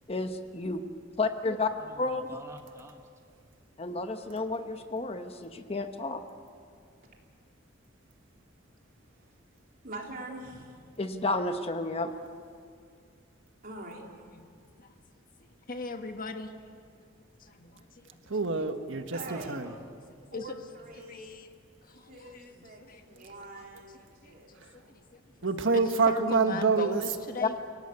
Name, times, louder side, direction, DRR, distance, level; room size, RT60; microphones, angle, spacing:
voice 1, 0.1-0.8 1.2-1.7 2.0-2.3 3.8-6.2 11.0-12.1 27.4-27.5, left 3 dB, 30° left, 7 dB, 1.1 m, -31 dB
voice 2, 1.8-3.0 19.2-20.1 21.1-21.2, right 1 dB, 15° right, 4 dB, 1.1 m, -48 dB
voice 3, 9.8-10.9 13.6-14.1 19.1-19.6 20.3-21.3 22.0-22.8 23.1-25.0, right 2 dB, 50° right, 0 dB, 3.8 m, -44 dB
voice 4, 15.7-16.5 17.4-17.9 20.3-20.5 21.0-21.5 21.8-23.2 23.5-23.6 24.2-25.2 25.7-27.5, left 3 dB, 50° left, 6 dB, 1.5 m, -40 dB
voice 5, 18.3-19.7 25.4-27.0, right 4 dB, 90° right, 7 dB, 1.5 m, -26 dB
29.5 x 17.5 x 8.3 m, 2.2 s
head